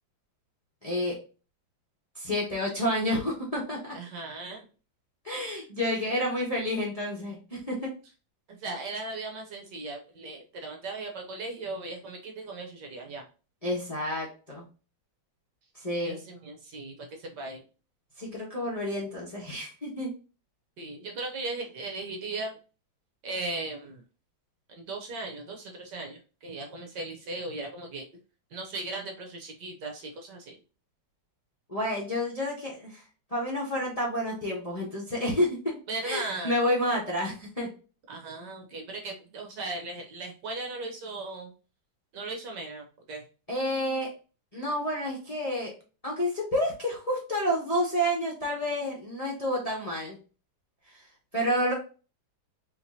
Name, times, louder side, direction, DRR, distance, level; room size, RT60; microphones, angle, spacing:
voice 1, 0.8-1.1 2.1-3.9 5.2-7.9 13.6-14.6 15.7-16.2 18.2-20.1 31.7-33.0 33.3-35.8 36.0-37.7 43.5-44.1 44.5-45.7 46.0-50.2 50.9-51.0 51.3-51.7, equal, 25° left, -4 dB, 1.0 m, -29 dB
voice 2, 3.9-4.7 5.5-5.6 8.5-13.2 16.0-17.6 20.8-22.6 23.2-24.0 24.7-28.1 28.5-30.6 35.9-36.5 38.1-41.5 42.1-43.2, right 2 dB, 65° right, 2 dB, 1.4 m, -37 dB
4.7 x 3.2 x 2.7 m, 0.35 s
omnidirectional pair, 2.2 m